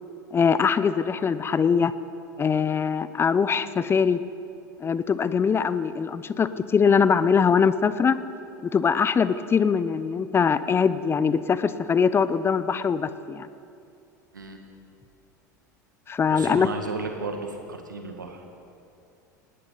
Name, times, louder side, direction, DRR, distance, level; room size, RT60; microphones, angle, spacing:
voice 1, 0.3-1.9 2.4-4.2 4.8-8.2 8.7-13.5 16.1-16.7, left 6 dB, 25° left, 15 dB, 0.6 m, -22 dB
voice 2, 16.3-18.5, right 3 dB, 90° right, 4 dB, 1.8 m, -34 dB
18.5 x 18.5 x 4.0 m, 2.6 s
hypercardioid pair, 80°, 10 cm